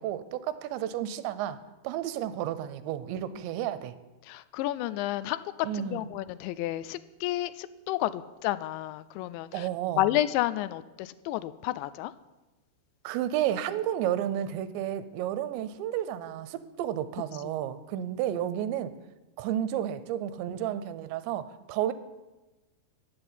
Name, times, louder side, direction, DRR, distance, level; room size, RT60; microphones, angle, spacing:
voice 1, 0.0-1.6 1.8-3.9 5.6-6.0 9.5-10.0 13.0-18.9 19.4-21.9, right 11 dB, 80° right, 14 dB, 2.9 m, -31 dB
voice 2, 4.2-9.7 10.0-12.1 18.0-18.1, left 15 dB, 85° left, 16 dB, 2.8 m, -31 dB
15.0 x 7.8 x 9.8 m, 1.1 s
omnidirectional pair, 5.3 m